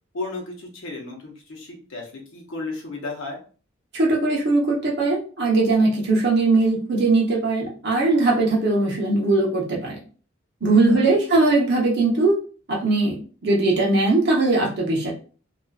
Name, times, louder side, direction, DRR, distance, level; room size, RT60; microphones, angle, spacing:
voice 1, 0.1-3.4 10.9-11.5, left 3 dB, 70° left, 0 dB, 0.8 m, -34 dB
voice 2, 3.9-10.0 10.6-12.4 12.7-15.1, right 2 dB, 55° right, -2 dB, 0.8 m, -20 dB
2.4 x 2.3 x 2.3 m, 0.39 s
head